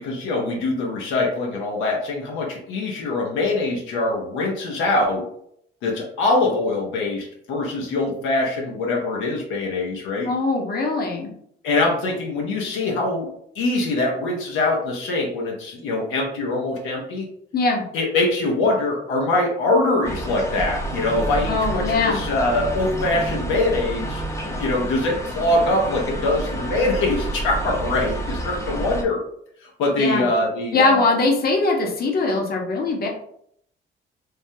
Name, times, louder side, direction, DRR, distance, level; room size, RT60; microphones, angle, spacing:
voice 1, 0.0-5.3 5.8-10.3 11.6-13.3 13.5-17.3 17.9-29.2 29.6-31.0, left 2 dB, 90° left, -1 dB, 0.7 m, -23 dB
voice 2, 10.3-11.3 17.5-17.9 21.5-22.2 30.0-30.3 30.7-33.1, left 3 dB, 50° left, 1 dB, 0.8 m, -21 dB
sound 1, 20.0-29.0, right 1 dB, 15° left, 0.6 m, -29 dB
3.3 x 2.1 x 2.6 m, 0.69 s
cardioid pair, 90°, 20 cm